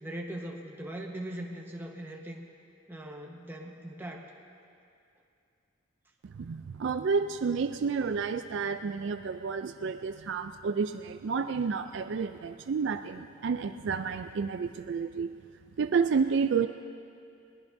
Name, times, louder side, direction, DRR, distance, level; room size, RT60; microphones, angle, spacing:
voice 1, 0.0-2.4 2.9-4.3, right 1 dB, 10° right, 0 dB, 1.1 m, -40 dB
voice 2, 6.2-15.3 15.8-16.7, right 5 dB, 60° right, 9 dB, 0.4 m, -30 dB
21.5 x 18.5 x 2.7 m, 2.5 s
head